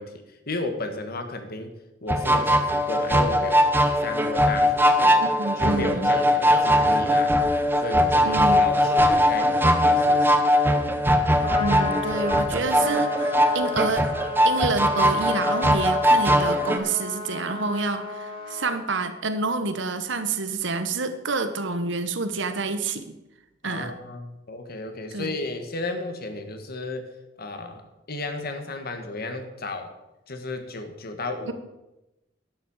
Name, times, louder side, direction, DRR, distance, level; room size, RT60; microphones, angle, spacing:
voice 1, 0.0-1.7 2.0-3.6 4.0-5.2 5.6-7.4 7.8-10.5 23.6-27.1 27.4-27.8 28.1-29.9 30.3-31.5, left 2 dB, 55° left, 6 dB, 1.6 m, -33 dB
sound 1, 2.1-16.8, equal, 10° right, 1.0 m, -20 dB
voice 2, 5.2-6.1 8.2-8.6 11.6-14.1 14.4-23.2 23.6-23.9 25.1-25.3, right 3 dB, 70° right, 9 dB, 1.1 m, -28 dB
Trumpet, 11.2-18.8, left 3 dB, 30° left, 2.0 m, -34 dB
11.0 x 7.5 x 7.2 m, 0.96 s
head